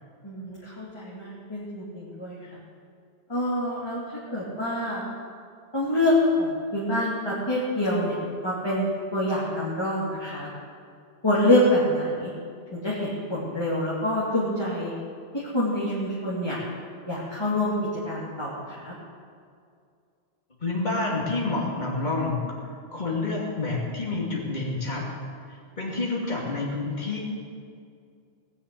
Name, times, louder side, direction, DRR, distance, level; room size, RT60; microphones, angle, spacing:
voice 1, 0.2-2.6 3.3-5.0 5.7-8.2 8.4-10.5 11.2-12.3 12.7-14.9 15.3-16.6 17.1-17.7 18.1-18.9, left 1 dB, 20° left, -8 dB, 2.7 m, -26 dB
voice 2, 20.6-22.4 22.9-25.1 25.5-27.4, left 3 dB, 40° left, -4 dB, 2.8 m, -28 dB
18.5 x 7.1 x 8.5 m, 2.3 s
omnidirectional pair, 1.2 m